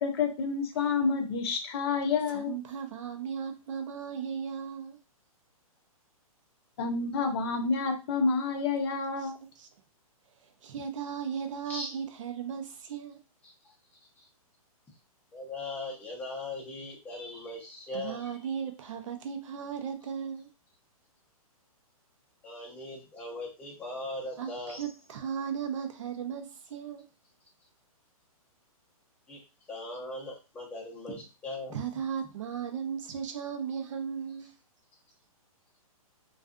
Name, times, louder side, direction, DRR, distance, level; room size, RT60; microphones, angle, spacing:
voice 1, 0.0-2.6 6.8-9.4, left 4 dB, 45° left, 0.6 m, -29 dB
voice 2, 2.3-5.0 9.6-9.7 10.4-13.2 17.9-20.5 24.4-27.1 31.7-34.5, right 7 dB, 55° right, 0.6 m, -36 dB
voice 3, 15.3-18.3 22.4-24.8 29.3-29.4 29.7-31.8, left 2 dB, 10° left, 0.6 m, -39 dB
2.5 x 2.3 x 2.4 m
hypercardioid pair, 155°, 19 cm